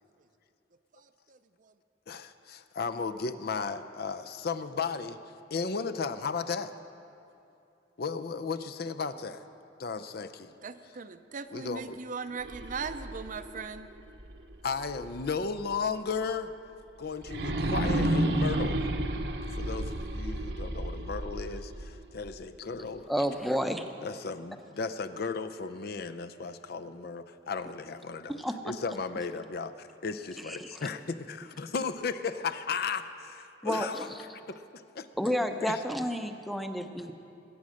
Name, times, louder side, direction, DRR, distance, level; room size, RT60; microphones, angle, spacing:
voice 1, 0.9-1.7 10.6-13.9, right 5 dB, 45° right, 10 dB, 0.5 m, -39 dB
voice 2, 2.1-5.2 5.5-6.7 8.0-9.4 9.8-10.5 11.5-12.0 14.6-16.5 17.0-18.8 19.6-23.1 24.0-34.1 34.3-35.1 35.6-35.8, left 5 dB, 55° left, 10 dB, 0.5 m, -35 dB
sound 1, 12.3-15.3 15.7-15.8 17.2-22.3, right 1 dB, 60° right, 0.9 m, -32 dB
voice 3, 23.1-23.8 28.4-28.7 30.5-30.8 33.6-34.2 35.2-37.1, equal, ahead, 6 dB, 0.6 m, -31 dB
21.0 x 8.4 x 6.4 m, 2.7 s
head